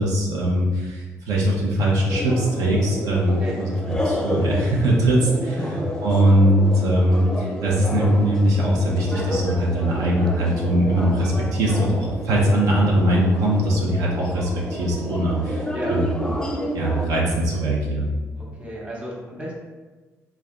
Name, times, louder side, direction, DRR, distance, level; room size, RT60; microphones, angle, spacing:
voice 1, 0.0-3.7 4.0-5.6 6.0-16.1 16.7-18.1, right 1 dB, 85° right, -4 dB, 0.7 m, -21 dB
sound 1, 2.1-17.1, left 1 dB, 10° left, 0.5 m, -30 dB
voice 2, 3.2-3.6 5.6-5.8 15.7-16.0 18.4-19.5, equal, 20° right, -4 dB, 1.1 m, -33 dB
3.3 x 2.3 x 3.6 m, 1.3 s
cardioid pair, 95°, 6 cm